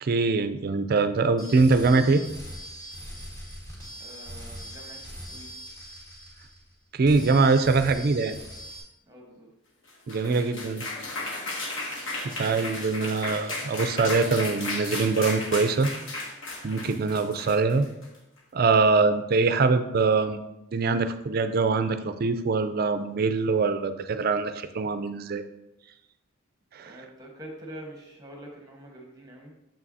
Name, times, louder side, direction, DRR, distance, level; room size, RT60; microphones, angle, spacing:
voice 1, 0.0-2.2 6.9-8.4 10.1-10.8 12.2-15.9 16.6-17.9 18.5-20.4 20.7-25.4 26.7-27.0, right 4 dB, 45° right, 10 dB, 0.4 m, -23 dB
sound 1, 1.4-6.7 7.0-8.8, equal, 20° left, 1.5 m, -41 dB
voice 2, 4.0-5.5 9.1-9.5 26.8-29.5, right 1 dB, 15° right, 0 dB, 1.1 m, -45 dB
sound 2, 9.9-18.2, left 2 dB, 60° left, 1.4 m, -34 dB
6.9 x 5.8 x 2.7 m, 0.91 s
head